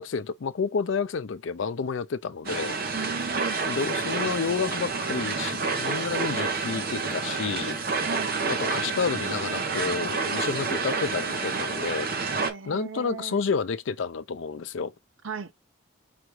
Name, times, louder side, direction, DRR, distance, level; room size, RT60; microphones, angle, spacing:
voice 1, 0.0-2.7 3.7-7.8 8.5-12.1 12.7-14.9, left 5 dB, 70° left, 0.4 m, -30 dB
sound 1, 2.4-12.5, right 4 dB, 45° right, 0.8 m, -29 dB
voice 2, 2.9-3.6 8.1-8.3 12.4-13.4 15.2-15.5, right 5 dB, 75° right, 0.7 m, -36 dB
5.0 x 3.4 x 3.1 m
head